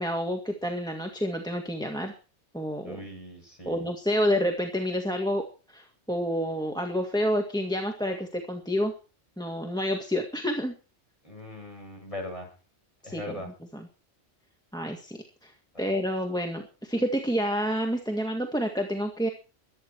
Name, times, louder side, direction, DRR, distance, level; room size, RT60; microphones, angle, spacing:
voice 1, 0.0-2.1 2.5-3.0 3.7-5.4 5.7-8.9 9.4-10.7 13.0-13.3 13.7-13.9 14.7-15.5 15.8-19.3, equal, 5° left, 3 dB, 1.8 m, -29 dB
voice 2, 2.8-3.8 11.2-12.5 13.0-13.5 15.7-15.9, left 1 dB, 30° left, 1 dB, 7.3 m, -40 dB
23.0 x 9.6 x 4.6 m, 0.34 s
omnidirectional pair, 1.2 m